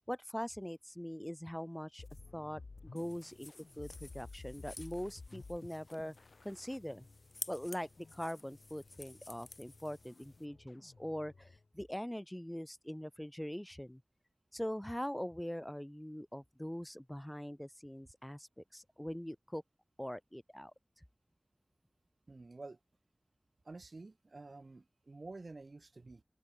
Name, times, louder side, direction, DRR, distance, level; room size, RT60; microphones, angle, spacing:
voice 1, 0.1-2.1 2.3-6.1 6.4-7.1 7.5-14.0 14.5-19.6 20.0-20.7, equal, 10° left, 0.8 m, -42 dB
sound 1, 2.0-11.7, left 3 dB, 90° left, 1.5 m, -55 dB
sound 2, 3.0-10.5, left 2 dB, 60° left, 0.4 m, -53 dB
voice 2, 22.3-22.8 23.6-26.2, right 3 dB, 70° right, 0.6 m, -50 dB
wide cardioid pair, 45°, 0 cm